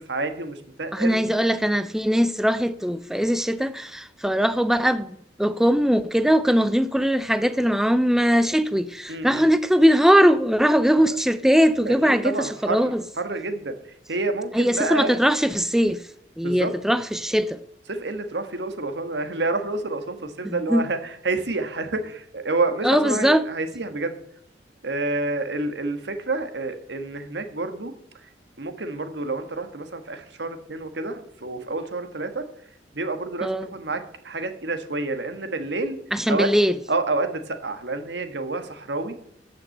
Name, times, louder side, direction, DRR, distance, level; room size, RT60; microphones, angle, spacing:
voice 1, 0.0-1.2 9.1-9.4 11.0-11.2 11.8-13.8 14.1-15.2 16.4-16.7 17.9-24.2 24.8-27.9 28.6-32.4 32.9-36.0 36.3-36.5 36.9-39.1, right 2 dB, 75° right, 1.5 m, -28 dB
voice 2, 0.9-5.1 5.4-13.0 14.5-16.0 16.4-17.6 20.4-20.9 22.8-23.5 33.4-33.7 36.1-36.7, equal, 5° right, 0.4 m, -20 dB
13.5 x 5.9 x 7.7 m
head